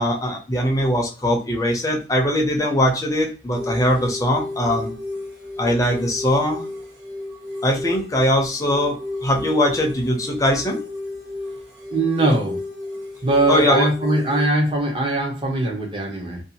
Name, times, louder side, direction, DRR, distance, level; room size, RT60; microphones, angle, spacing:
voice 1, 0.0-4.9 5.6-6.6 7.6-10.8 13.5-13.9, left 1 dB, 20° left, 1 dB, 0.6 m, -21 dB
sound 1, 3.5-14.5, left 2 dB, 75° right, 0.8 m, -33 dB
voice 2, 11.9-12.6 13.2-16.4, right 2 dB, 30° right, 1 dB, 0.7 m, -21 dB
2.6 x 2.3 x 2.7 m, 0.34 s
head